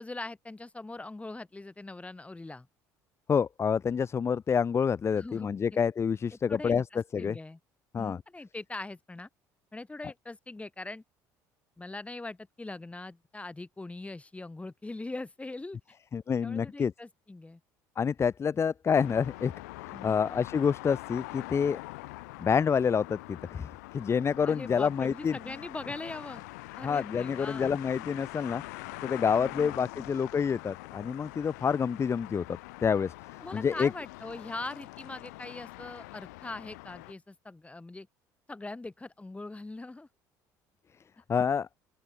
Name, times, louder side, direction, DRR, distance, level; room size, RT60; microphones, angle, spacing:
voice 1, 0.0-2.7 5.1-5.8 6.3-7.6 8.0-9.3 9.7-11.0 11.8-15.8 16.4-17.6 19.9-20.2 24.5-26.4 26.8-27.7 33.4-38.1 38.5-40.1, left 2 dB, 15° left, 4.2 m, -41 dB
voice 2, 3.3-6.8 7.1-7.4 7.9-8.2 16.1-16.9 18.0-19.5 19.8-21.8 22.4-25.4 26.8-33.9 41.3-41.7, left 6 dB, 30° left, 0.5 m, -28 dB
sound 1, 18.9-37.1, left 24 dB, 85° left, 0.9 m, -44 dB
open air
supercardioid pair, 75°, 9 cm